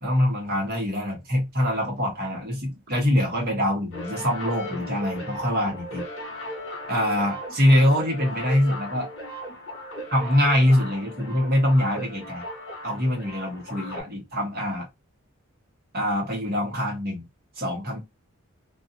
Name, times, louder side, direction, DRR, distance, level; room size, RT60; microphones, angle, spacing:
voice 1, 0.0-6.0 6.9-9.1 10.1-12.4 12.8-14.9 15.9-17.3 17.6-18.0, left 1 dB, 45° right, 1.1 m, -24 dB
sound 1, 3.9-14.0, equal, 60° left, 1.2 m, -37 dB
2.5 x 2.4 x 2.7 m
head